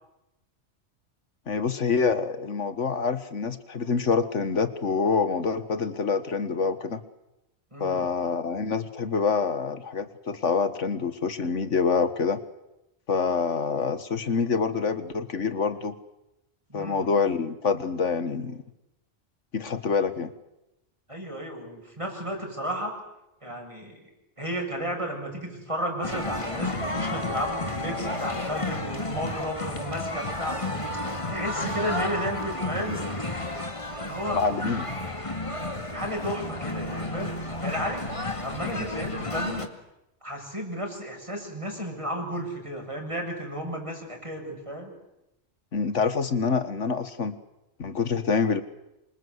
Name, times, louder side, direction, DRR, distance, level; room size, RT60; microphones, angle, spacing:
voice 1, 1.5-7.0 7.8-12.4 13.1-16.0 16.7-18.6 19.5-20.3 34.3-34.9 45.7-47.4 47.8-48.6, left 5 dB, 90° left, 12 dB, 1.9 m, -26 dB
voice 2, 7.7-8.1 16.7-17.1 21.1-23.0 23.4-24.1 24.4-33.1 33.9-34.8 35.9-38.0 38.3-39.7 40.2-44.9, equal, 25° right, 1 dB, 7.4 m, -33 dB
sound 1, 26.0-39.7, left 2 dB, 25° left, 2.2 m, -32 dB
27.5 x 25.0 x 8.2 m, 0.90 s
omnidirectional pair, 1.2 m